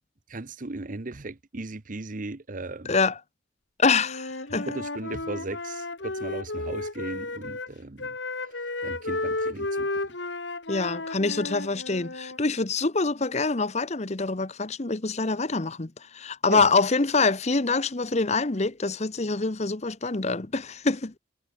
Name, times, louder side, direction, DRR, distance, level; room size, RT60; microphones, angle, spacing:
voice 1, 0.3-3.0 4.7-10.0 16.5-16.6, right 2 dB, 45° right, 0.9 m, -37 dB
voice 2, 2.8-3.2 3.8-4.7 10.7-21.2, left 4 dB, 35° left, 1.0 m, -25 dB
Wind instrument woodwind instrument, 4.0-7.7 8.0-12.4, left 2 dB, 70° left, 3.3 m, -33 dB
head